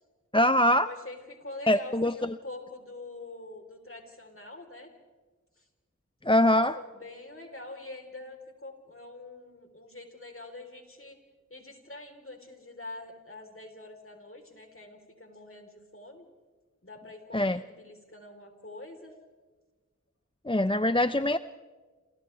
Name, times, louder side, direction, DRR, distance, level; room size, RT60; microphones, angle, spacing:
voice 1, 0.3-0.9 1.7-2.3 6.2-6.8 17.3-17.6 20.5-21.4, left 1 dB, 15° left, 12 dB, 0.6 m, -23 dB
voice 2, 0.9-4.9 5.6-5.7 6.3-11.2 11.5-16.2 16.8-19.2 20.7-21.1, left 2 dB, 45° left, 4 dB, 4.0 m, -45 dB
29.0 x 28.0 x 3.4 m, 1.4 s
wide cardioid pair, 50°, 31 cm